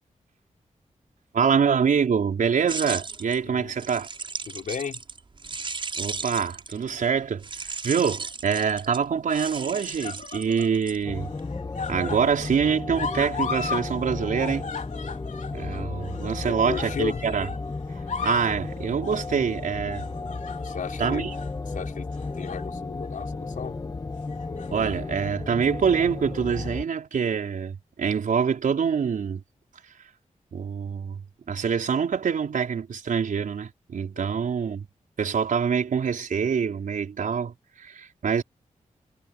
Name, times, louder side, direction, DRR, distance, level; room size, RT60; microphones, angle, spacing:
voice 1, 1.3-4.1 6.0-11.3 11.9-14.7 15.5-17.5 18.2-20.0 21.0-21.3 24.7-29.4 30.0-30.1 30.5-31.2 31.5-34.9 35.2-38.4, right 6 dB, 85° right, 4.9 m, -25 dB
sound 1, 2.7-6.9 7.4-11.4, right 4 dB, 40° right, 6.3 m, -36 dB
voice 2, 3.4-3.8 4.5-5.0 16.5-17.2 20.6-21.3 21.7-22.1 22.4-23.8 34.1-34.3, left 6 dB, 90° left, 5.3 m, -34 dB
sound 2, 8.0-8.6 9.5-10.8 11.1-13.9 14.1-17.6 17.9-18.6 19.0-19.3 19.9-20.9 21.3-21.5 22.2-22.7 23.0-23.2 24.3-25.0 25.9-26.0, left 6 dB, 70° left, 3.9 m, -36 dB
sound 3, 11.0-26.8, left 3 dB, 25° left, 1.9 m, -34 dB
wide cardioid pair, 175°, 13 cm